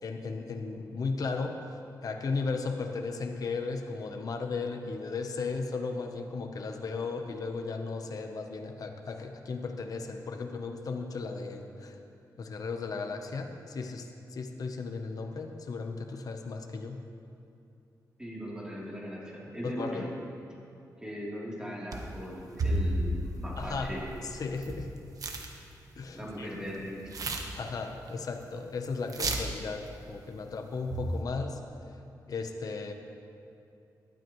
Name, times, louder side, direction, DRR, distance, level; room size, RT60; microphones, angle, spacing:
voice 1, 0.0-1.6 2.0-12.0 12.4-17.0 19.6-20.1 23.6-23.9 24.2-24.9 26.0-26.6 27.5-31.6 32.3-32.9, left 4 dB, 60° left, 5 dB, 1.0 m, -35 dB
voice 2, 18.2-20.1 21.0-24.1 26.1-27.0, equal, 10° right, -6 dB, 3.4 m, -38 dB
sound 1, 21.9-22.2 22.6-24.9 25.2-25.5 25.8-26.3 26.7-28.1 28.3-28.4 28.8-28.9 29.1-29.6 30.8-31.2, right 1 dB, 55° right, 1.2 m, -32 dB
18.0 x 12.0 x 3.2 m, 2.6 s
cardioid pair, 90°, 7 cm